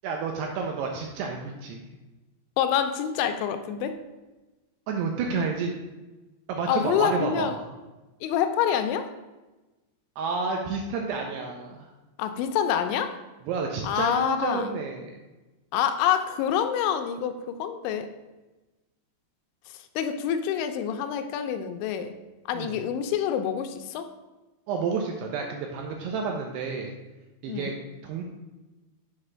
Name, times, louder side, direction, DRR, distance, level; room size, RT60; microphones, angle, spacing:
voice 1, 0.0-1.9 4.9-5.7 6.5-7.7 10.2-11.9 13.5-15.1 22.5-22.8 24.7-27.0 27.4-27.8 28.0-28.2, right 5 dB, 85° right, 2 dB, 2.4 m, -30 dB
voice 2, 2.6-3.9 6.7-7.5 8.2-9.1 12.2-13.2 13.8-14.7 15.7-18.1 19.7-22.2 22.5-24.1 27.5-27.8, left 9 dB, 85° left, 7 dB, 2.8 m, -27 dB
7.7 x 3.2 x 6.1 m, 1.1 s
omnidirectional pair, 5.3 m